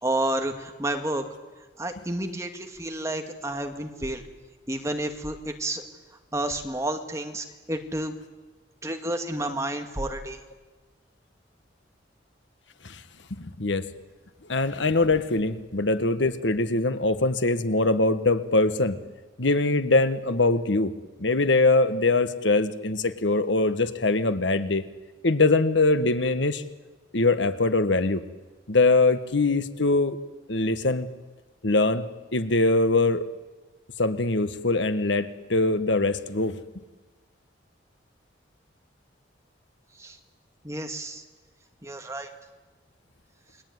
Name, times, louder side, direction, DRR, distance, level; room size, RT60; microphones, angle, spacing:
voice 1, 0.0-1.3 1.8-4.2 4.7-5.8 6.3-8.2 8.8-10.4 40.0-40.2 40.6-41.2 41.8-42.3, right 1 dB, 15° right, 5 dB, 2.2 m, -30 dB
voice 2, 13.4-13.8 14.5-19.0 19.4-20.9 21.2-24.8 25.2-26.6 27.1-28.2 28.7-30.2 30.5-31.1 31.6-32.0 32.3-33.3 34.0-36.6, left 2 dB, 75° left, 11 dB, 1.4 m, -22 dB
29.0 x 21.5 x 9.5 m, 1.3 s
head